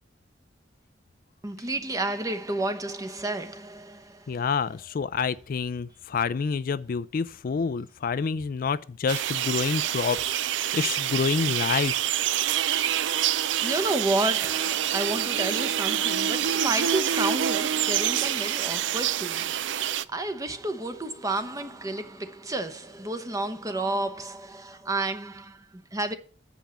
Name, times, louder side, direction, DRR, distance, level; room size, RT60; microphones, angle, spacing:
voice 1, 1.4-4.4 13.4-26.1, right 2 dB, 20° right, 0.9 m, -31 dB
voice 2, 4.3-12.2, left 5 dB, 50° left, 0.4 m, -28 dB
sound 1, 9.1-20.0, right 10 dB, 90° right, 0.4 m, -26 dB
7.4 x 5.4 x 7.0 m
head